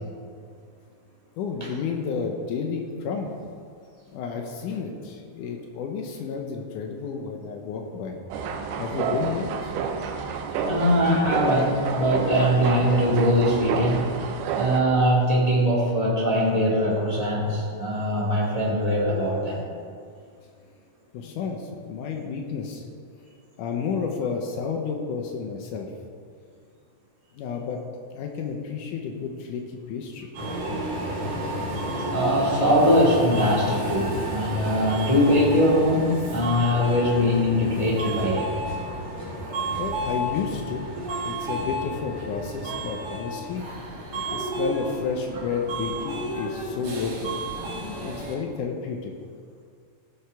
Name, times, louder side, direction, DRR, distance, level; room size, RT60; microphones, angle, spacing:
voice 1, 1.4-3.3 4.1-8.2 8.8-9.7 21.1-22.8 23.6-25.9 27.3-27.8 28.1-30.3 39.8-40.9 41.3-43.6 44.3-47.2 48.0-49.1, left 5 dB, 90° left, 2 dB, 1.8 m, -31 dB
sound 1, 8.3-14.8, right 5 dB, 90° right, 3.1 m, -29 dB
voice 2, 10.6-19.6 32.1-38.5 48.0-48.3, equal, 15° left, -5 dB, 1.5 m, -22 dB
Subway metro underground, 30.3-48.4, right 1 dB, 50° right, 3.8 m, -31 dB
18.0 x 6.9 x 4.7 m, 2.2 s
omnidirectional pair, 4.9 m